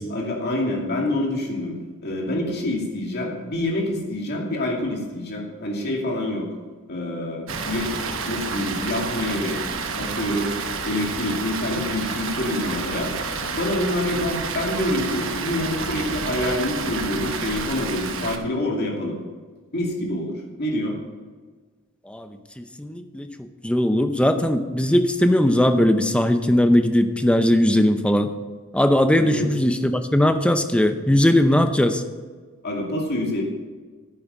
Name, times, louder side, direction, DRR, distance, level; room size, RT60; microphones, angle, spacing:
voice 1, 0.1-1.8 2.0-6.5 6.9-9.6 10.0-10.6 10.8-19.2 19.7-20.9 29.2-29.5 32.6-33.4, left 1 dB, 50° left, -1 dB, 2.5 m, -26 dB
Water, 7.5-18.4, right 4 dB, 65° right, 1.0 m, -29 dB
voice 2, 22.1-23.3 23.6-28.3 28.7-32.0, left 1 dB, 5° left, 8 dB, 0.6 m, -19 dB
10.5 x 8.9 x 5.5 m, 1.4 s
head